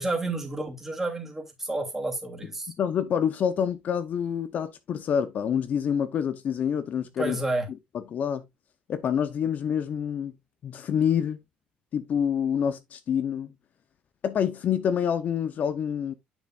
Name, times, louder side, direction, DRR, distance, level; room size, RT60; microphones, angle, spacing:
voice 1, 0.0-2.7 7.2-7.7, right 2 dB, 10° right, 2.9 m, -30 dB
voice 2, 2.8-7.4 7.7-8.4 8.9-10.3 10.6-11.4 11.9-13.5 14.2-16.1, left 8 dB, 50° left, 0.7 m, -27 dB
9.2 x 6.8 x 2.4 m
cardioid pair, 115°, 3 cm